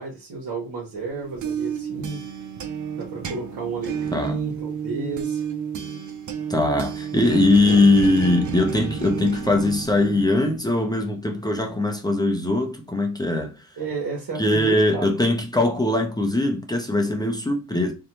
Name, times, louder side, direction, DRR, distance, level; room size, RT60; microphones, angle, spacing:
voice 1, 0.0-2.2 2.9-5.5 7.6-7.8 13.8-15.1, right 4 dB, 70° right, 1.0 m, -32 dB
sound 1, 1.1-10.7, right 7 dB, 50° right, 0.5 m, -31 dB
voice 2, 6.5-13.6 14.4-17.9, left 2 dB, 10° left, 0.5 m, -21 dB
2.6 x 2.2 x 2.9 m
cardioid pair, 100°, 38 cm